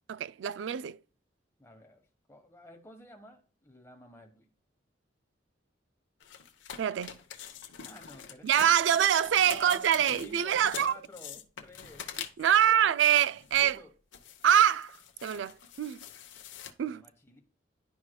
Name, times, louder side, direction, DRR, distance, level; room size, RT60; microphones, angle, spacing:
voice 1, 0.1-1.0 6.8-7.2 8.4-10.9 12.4-13.8 14.4-16.0 16.8-17.0, right 9 dB, 65° right, 0.3 m, -25 dB
voice 2, 1.6-2.0 2.3-4.5 7.8-8.9 9.5-12.1 12.5-12.9 13.6-13.9 16.8-17.4, left 1 dB, 15° left, 1.2 m, -51 dB
sound 1, 6.2-12.6 13.2-13.8 14.1-16.7, left 8 dB, 70° left, 0.8 m, -45 dB
11.0 x 4.8 x 2.2 m
head